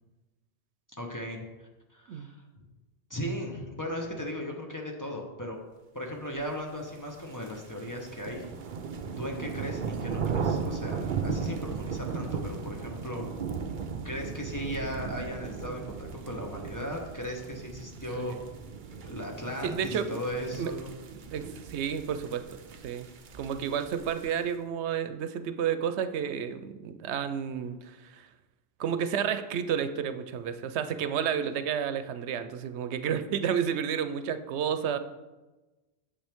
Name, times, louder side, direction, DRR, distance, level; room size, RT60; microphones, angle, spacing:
voice 1, 1.0-1.4 1.9-2.6 3.1-5.6 5.9-8.6 9.2-13.3 14.0-18.4 19.0-20.9, equal, 20° left, 0 dB, 1.1 m, -37 dB
sound 1, 7.0-24.5, right 5 dB, 55° right, 0.7 m, -36 dB
voice 2, 19.6-20.2 20.6-20.7 21.3-22.6 22.8-23.1 23.4-28.3 28.8-35.0, right 8 dB, 90° right, 10 dB, 0.9 m, -31 dB
8.8 x 7.0 x 3.6 m, 1.1 s
omnidirectional pair, 1.1 m